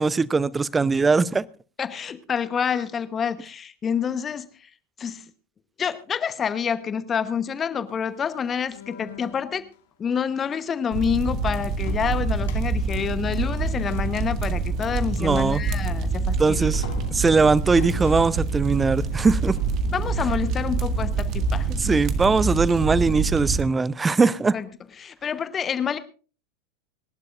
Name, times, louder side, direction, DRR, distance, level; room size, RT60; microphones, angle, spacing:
voice 1, 0.0-1.4 15.2-15.6 16.4-16.8 17.1-19.6 21.8-24.5, right 4 dB, 15° right, 21 dB, 0.6 m, -20 dB
voice 2, 1.8-4.7 5.0-5.3 5.8-9.7 10.0-16.7 19.9-22.0 24.5-24.7 25.0-26.0, left 7 dB, 25° left, 13 dB, 1.0 m, -28 dB
sound 1, 7.9-9.8 11.9-15.7 16.5-20.1, left 8 dB, 60° left, 2.1 m, -45 dB
sound 2, 10.9-23.6, right 4 dB, 40° right, 1.9 m, -26 dB
27.0 x 11.5 x 2.5 m, 0.38 s
figure-of-eight pair, 85°, 0 cm